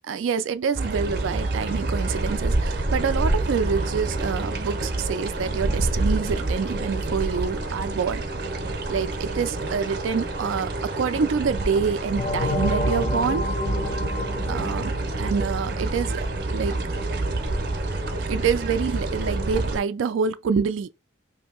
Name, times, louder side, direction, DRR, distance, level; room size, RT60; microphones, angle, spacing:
voice 1, 0.1-8.2 8.9-10.7 11.0-13.4 14.5-16.8 18.3-20.9, right 6 dB, 90° right, 0.4 m, -26 dB
sound 1, 0.7-19.8, right 2 dB, 55° right, 0.7 m, -27 dB
sound 2, 12.2-16.6, left 2 dB, 35° left, 0.5 m, -30 dB
2.7 x 2.7 x 3.7 m
head